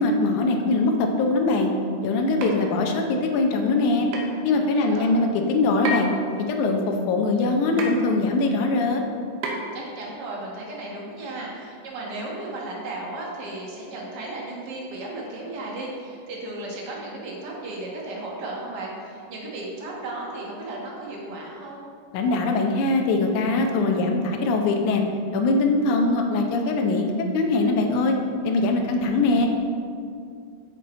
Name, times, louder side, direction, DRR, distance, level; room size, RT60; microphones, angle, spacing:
voice 1, 0.0-1.7 2.0-4.1 4.4-6.1 6.5-9.0 22.1-25.0 25.3-28.2 28.4-29.5, left 3 dB, 75° left, 3 dB, 2.1 m, -22 dB
sound 1, 2.4-2.6 4.1-4.3 5.9-6.2 7.8-8.0 9.4-9.8, right 1 dB, 85° right, 2.7 m, -29 dB
voice 2, 4.5-5.2 9.7-21.8, right 2 dB, 60° right, -3 dB, 1.0 m, -35 dB
7.6 x 7.1 x 4.2 m, 2.3 s
omnidirectional pair, 3.8 m